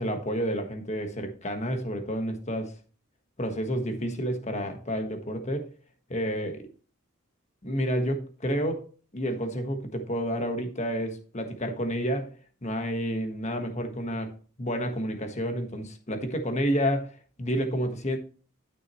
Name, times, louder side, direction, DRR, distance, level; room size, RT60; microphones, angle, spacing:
voice 1, 0.0-2.7 3.4-5.7 6.1-6.7 7.6-8.8 9.1-12.3 12.6-14.3 14.6-18.2, equal, 30° left, 1.4 m, -30 dB
12.0 x 6.1 x 3.1 m
head